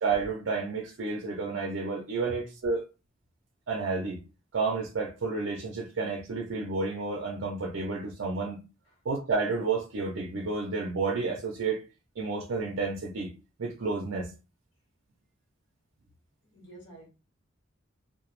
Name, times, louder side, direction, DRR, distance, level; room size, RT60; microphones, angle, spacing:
voice 1, 0.0-2.8 3.7-4.2 4.5-8.6 9.1-11.8 12.2-13.3 13.6-14.3, right 4 dB, 80° right, 0.5 m, -31 dB
voice 2, 16.4-17.1, right 2 dB, 65° left, 1.2 m, -48 dB
2.1 x 2.0 x 3.0 m
head